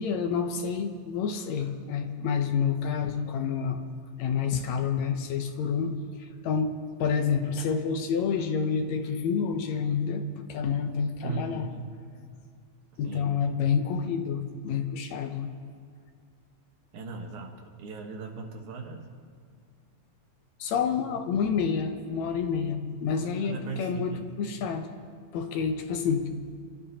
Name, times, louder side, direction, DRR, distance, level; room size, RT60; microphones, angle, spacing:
voice 1, 0.0-3.8 4.2-6.7 7.0-11.7 13.0-15.5 20.6-24.9 25.3-26.3, left 6 dB, 75° left, 6 dB, 2.1 m, -28 dB
voice 2, 11.2-11.9 13.0-13.3 16.9-19.1 23.1-24.3, right 4 dB, 80° right, 3 dB, 2.8 m, -38 dB
28.5 x 12.5 x 2.9 m, 2.2 s
omnidirectional pair, 3.4 m